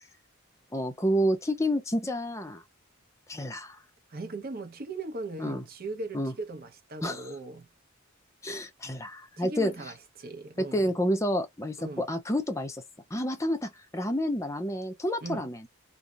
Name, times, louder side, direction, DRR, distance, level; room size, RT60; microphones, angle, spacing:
voice 1, 0.7-2.6 3.3-3.8 5.4-5.6 6.1-6.3 7.0-7.3 8.4-9.7 10.6-12.8 13.1-15.6, equal, 15° left, 0.5 m, -29 dB
voice 2, 4.1-7.7 9.4-10.9 11.8-12.1 15.2-15.5, right 3 dB, 45° right, 0.7 m, -39 dB
2.7 x 2.0 x 2.2 m
head